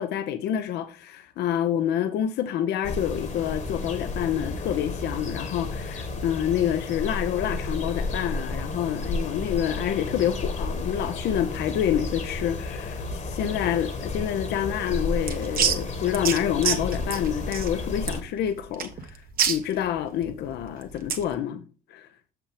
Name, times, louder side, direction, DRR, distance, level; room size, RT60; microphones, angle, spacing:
voice 1, 0.0-19.2 19.5-21.6 21.9-22.1, left 10 dB, 60° left, 0.8 m, -27 dB
sound 1, 2.8-18.2, left 2 dB, 40° left, 1.4 m, -32 dB
sound 2, 14.8-21.3, right 7 dB, 50° right, 1.1 m, -29 dB
7.2 x 5.9 x 3.5 m
hypercardioid pair, 60°, 19 cm